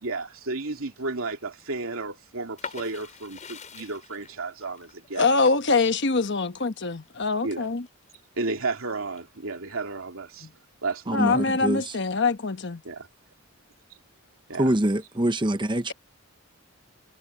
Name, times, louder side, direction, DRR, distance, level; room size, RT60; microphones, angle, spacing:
voice 1, 0.0-5.3 7.4-7.7 8.4-10.5 10.8-11.4 12.8-13.1 14.5-14.7, right 3 dB, 80° right, 2.6 m, -33 dB
sound 1, 2.6-8.2 8.7-9.5, left 5 dB, 35° left, 6.3 m, -44 dB
voice 2, 5.1-7.9 10.4-10.5 11.1-12.8, left 4 dB, 55° left, 1.2 m, -24 dB
voice 3, 11.1-11.8 14.6-15.9, right 1 dB, 20° right, 0.9 m, -24 dB
head